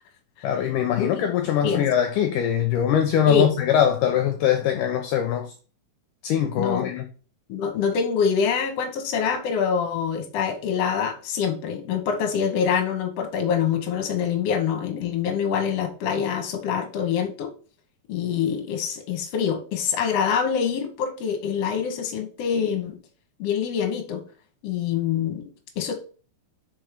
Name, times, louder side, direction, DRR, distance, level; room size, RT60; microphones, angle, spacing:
voice 1, 0.4-5.5 6.2-7.1, left 9 dB, 75° left, 2.0 m, -22 dB
voice 2, 6.6-6.9 7.5-17.5 18.1-23.0 23.4-24.2 24.6-25.5 25.8-25.9, left 7 dB, 60° left, 1.8 m, -25 dB
5.0 x 4.5 x 5.1 m
omnidirectional pair, 4.2 m